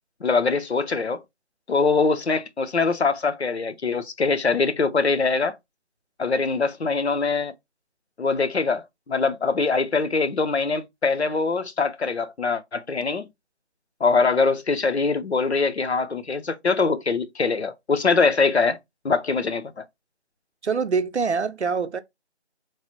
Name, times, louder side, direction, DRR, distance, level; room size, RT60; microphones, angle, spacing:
voice 1, 0.2-1.2 1.7-5.6 6.2-7.5 8.2-13.3 14.0-18.8 19.0-19.8, left 4 dB, 70° left, 0.6 m, -23 dB
voice 2, 20.6-22.0, right 5 dB, 75° right, 0.5 m, -24 dB
3.1 x 2.1 x 2.9 m
figure-of-eight pair, 175°, 34 cm